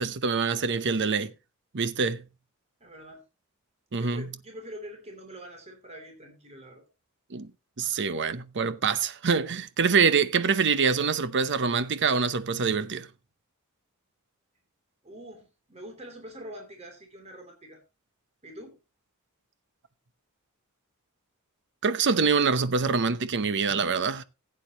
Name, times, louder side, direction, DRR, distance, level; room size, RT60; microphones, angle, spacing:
voice 1, 0.0-1.3 1.7-2.2 3.9-4.3 7.3-7.5 7.8-13.1 21.8-24.2, right 5 dB, 55° right, 0.8 m, -25 dB
voice 2, 2.8-3.2 3.9-6.8 15.0-17.8 18.4-18.8, equal, 30° right, 3.0 m, -44 dB
16.0 x 8.7 x 2.9 m
head